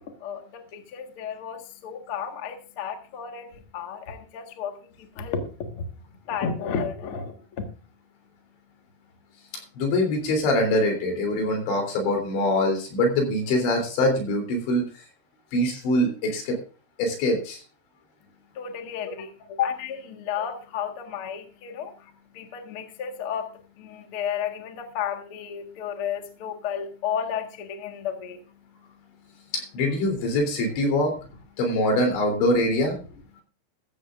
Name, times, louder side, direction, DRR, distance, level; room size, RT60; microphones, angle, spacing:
voice 1, 0.2-5.8 6.3-7.7 18.5-22.1 22.3-28.4, left 7 dB, 90° left, 4 dB, 1.2 m, -32 dB
voice 2, 9.8-14.9 15.5-16.6 17.0-17.6 29.5-31.1 31.6-33.0, left 1 dB, 70° left, 3 dB, 5.7 m, -23 dB
15.0 x 14.0 x 2.5 m, 0.35 s
omnidirectional pair, 5.5 m